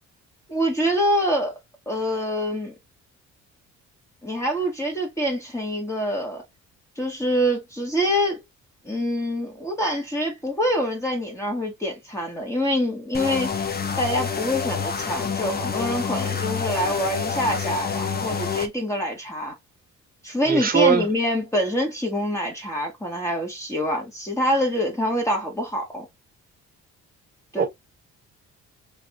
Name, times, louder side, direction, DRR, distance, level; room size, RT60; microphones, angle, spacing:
voice 1, 0.5-1.6 1.9-2.7 4.2-6.4 7.0-8.4 8.8-19.5 20.2-26.1 27.5-27.7, equal, 10° left, 1.4 m, -25 dB
sound 1, 13.1-18.7, left 6 dB, 30° left, 0.7 m, -28 dB
voice 2, 20.5-21.1 27.6-27.7, right 5 dB, 30° right, 1.4 m, -20 dB
3.3 x 2.6 x 3.0 m
cardioid pair, 90°, 30 cm